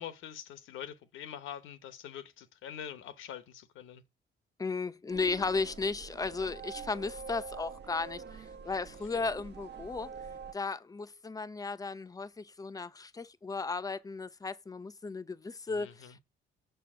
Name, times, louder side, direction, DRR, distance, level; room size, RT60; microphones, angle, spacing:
voice 1, 0.0-4.0 9.1-9.3 15.7-16.2, left 9 dB, 85° left, 0.9 m, -44 dB
voice 2, 4.6-10.1 10.5-16.2, left 4 dB, 20° left, 0.6 m, -35 dB
sound 1, 5.1-10.5, right 6 dB, 60° right, 1.1 m, -46 dB
6.7 x 4.6 x 6.1 m
cardioid pair, 90°, 20 cm